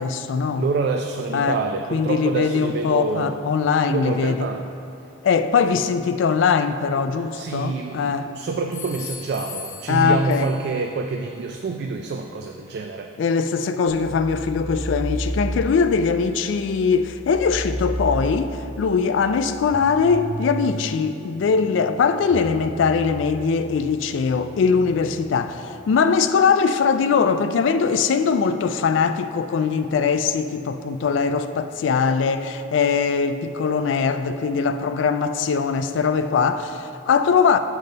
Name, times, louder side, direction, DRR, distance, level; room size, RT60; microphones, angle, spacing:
voice 1, 0.0-0.7 1.3-1.6 1.9-4.4 5.2-8.3 9.9-10.5 13.2-37.6, left 5 dB, 70° left, 0.3 m, -21 dB
voice 2, 0.6-3.4 3.8-4.7 7.3-13.1, right 4 dB, 55° right, 0.3 m, -27 dB
sound 1, 7.5-8.2 8.7-10.9, left 6 dB, 40° left, 0.7 m, -39 dB
sound 2, 13.9-25.3, right 1 dB, 5° right, 0.5 m, -33 dB
7.3 x 3.9 x 5.3 m
head